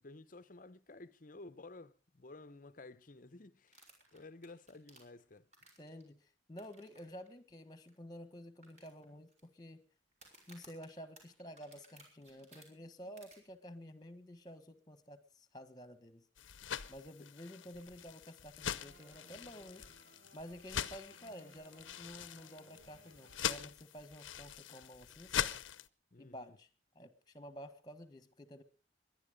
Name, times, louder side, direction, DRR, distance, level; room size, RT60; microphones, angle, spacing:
voice 1, 0.0-5.4 26.1-26.6, left 2 dB, 45° left, 0.8 m, -53 dB
sound 1, 3.7-6.0 6.6-7.0 7.3-7.4 7.9-8.0 8.6-9.4 10.1-12.7 13.2-13.4, right 2 dB, 35° right, 5.3 m, -60 dB
voice 2, 5.8-9.8 10.5-16.2 16.9-19.8 20.3-25.5 26.2-26.7 26.9-28.6, equal, 20° left, 1.6 m, -51 dB
sound 2, 16.4-25.9, left 8 dB, 80° left, 0.8 m, -42 dB
sound 3, 18.8-24.0, right 2 dB, 55° right, 1.1 m, -64 dB
22.5 x 11.0 x 5.2 m
head